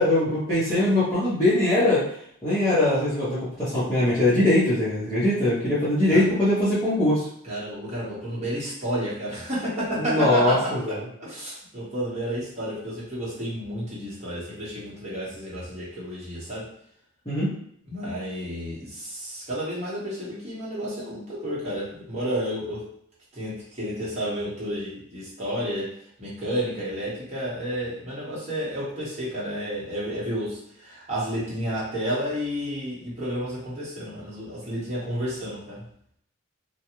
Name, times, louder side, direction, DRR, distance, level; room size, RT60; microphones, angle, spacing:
voice 1, 0.0-2.0 2.4-7.3 10.0-10.8 17.3-17.5, left 1 dB, 15° left, -14 dB, 0.9 m, -21 dB
voice 2, 7.4-16.7 17.8-22.9 23.3-25.9 26.2-35.8, equal, 30° right, -8 dB, 1.0 m, -31 dB
2.4 x 2.2 x 2.9 m, 0.67 s
head